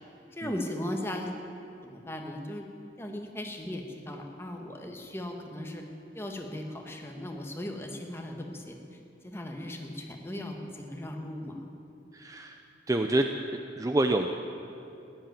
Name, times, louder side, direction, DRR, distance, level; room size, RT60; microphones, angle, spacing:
voice 1, 0.3-1.3 1.8-2.6 3.0-5.8 6.1-8.8 9.2-11.7, left 1 dB, 15° left, 2 dB, 1.4 m, -37 dB
voice 2, 12.1-14.3, right 1 dB, 20° right, 5 dB, 0.5 m, -28 dB
15.0 x 10.5 x 9.1 m, 2.7 s
head